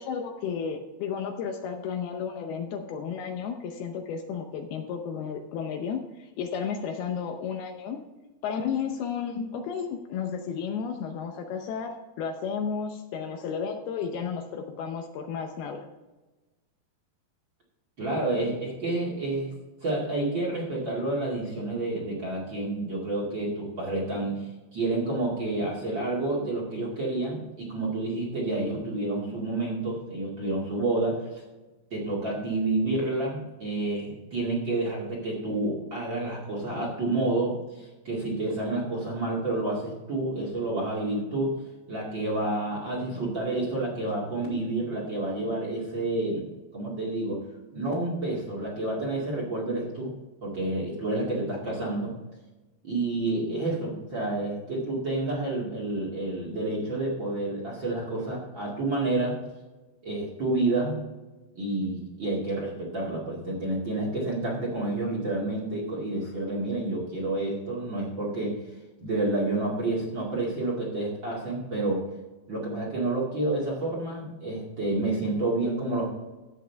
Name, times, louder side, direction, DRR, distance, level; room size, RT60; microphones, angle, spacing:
voice 1, 0.0-8.0 8.4-11.9 12.2-15.8, left 6 dB, 75° left, 4 dB, 2.6 m, -33 dB
voice 2, 18.0-19.5 19.8-31.4 31.9-41.5 41.9-46.5 46.7-47.4 47.7-50.1 50.4-52.1 52.8-59.4 60.0-61.0 61.5-68.6 69.0-72.1 72.5-76.0, right 2 dB, 35° right, -3 dB, 2.3 m, -29 dB
13.0 x 8.4 x 3.4 m, 1.1 s
omnidirectional pair, 4.9 m